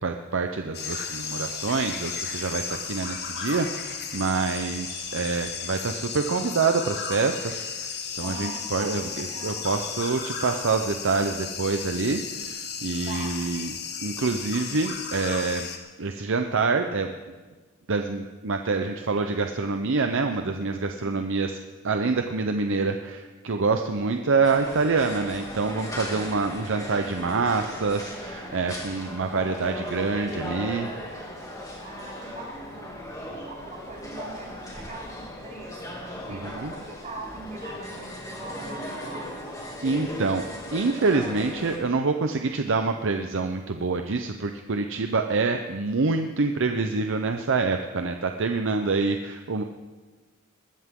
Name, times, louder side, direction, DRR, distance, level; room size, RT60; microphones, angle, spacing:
voice 1, 0.0-13.7 14.0-15.7 16.0-17.1 17.9-21.6 21.8-30.9 36.3-36.7 39.8-40.4 40.7-49.6, right 4 dB, 60° right, 6 dB, 0.7 m, -26 dB
sound 1, 0.7-15.8, left 6 dB, 50° left, 1.6 m, -34 dB
voice 2, 8.2-9.8 13.1-13.3 21.0-21.2 26.0-26.5 31.8-39.4 48.6-48.8, right 2 dB, 35° right, -4 dB, 6.4 m, -42 dB
sound 2, 24.4-41.8, left 1 dB, 15° left, 2.5 m, -37 dB
20.5 x 14.0 x 3.8 m, 1.3 s
head